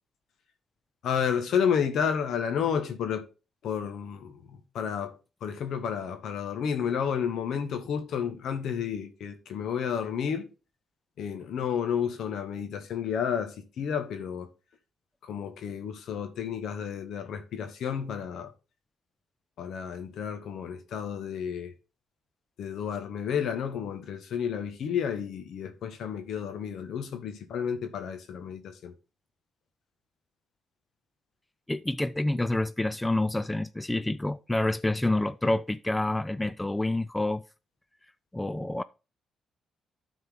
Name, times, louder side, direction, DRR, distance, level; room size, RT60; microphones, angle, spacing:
voice 1, 1.0-3.2 3.6-5.1 5.4-10.5 11.2-14.5 15.2-18.5 19.6-21.7 22.6-28.9, left 7 dB, 70° left, 1.7 m, -31 dB
voice 2, 31.7-37.4 38.3-38.8, left 2 dB, 10° left, 0.4 m, -28 dB
12.0 x 4.4 x 3.9 m
cardioid pair, 90°, 0 cm